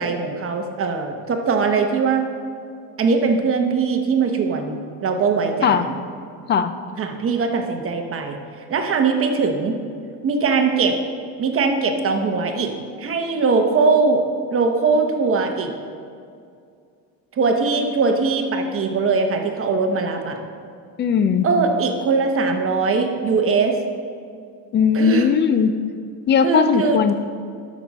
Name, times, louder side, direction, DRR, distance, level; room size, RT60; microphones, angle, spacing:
voice 1, 0.0-2.3 3.0-5.9 7.0-8.4 8.7-9.7 10.2-11.0 11.4-14.2 14.5-15.7 17.3-20.4 21.4-23.8 24.9-25.3 26.4-27.0, right 4 dB, 35° right, 4 dB, 0.9 m, -21 dB
voice 2, 21.0-21.5 24.7-25.8 26.3-27.1, left 7 dB, 30° left, 11 dB, 0.4 m, -18 dB
12.5 x 6.3 x 4.1 m, 2.3 s
cardioid pair, 135°, 40 cm